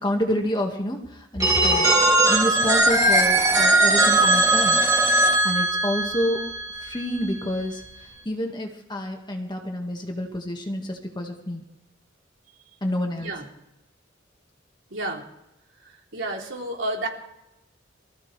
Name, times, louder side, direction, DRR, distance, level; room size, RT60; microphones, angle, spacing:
voice 1, 0.0-1.9 2.3-4.8 5.4-6.4 6.8-7.8 8.3-11.6 12.8-13.3, left 1 dB, 25° left, 2 dB, 1.9 m, -28 dB
Telephone, 1.4-7.2, right 2 dB, 20° right, 2.7 m, -19 dB
voice 2, 14.9-15.2 16.1-17.1, right 2 dB, 70° right, -1 dB, 3.5 m, -30 dB
24.5 x 14.5 x 3.4 m, 0.87 s
head